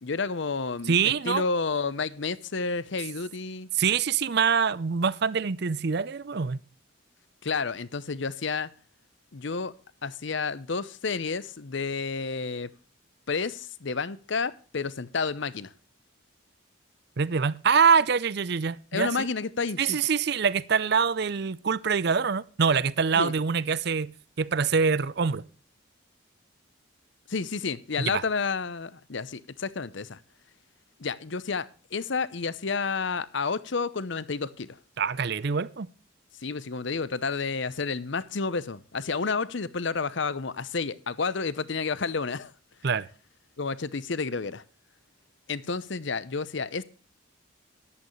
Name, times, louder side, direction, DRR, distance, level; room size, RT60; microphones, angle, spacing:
voice 1, 0.0-1.0 1.2-3.7 7.4-8.7 9.3-9.7 10.0-12.7 13.3-15.7 18.9-20.0 23.2-23.3 27.3-30.2 31.0-34.8 36.4-42.5 43.6-44.6 45.5-46.8, left 4 dB, 60° left, 0.7 m, -30 dB
voice 2, 0.9-1.4 3.8-6.6 17.2-19.3 19.8-24.1 24.4-25.4 28.0-28.2 35.0-35.9 42.8-43.1, right 6 dB, 50° right, 0.5 m, -25 dB
14.0 x 11.0 x 3.1 m
head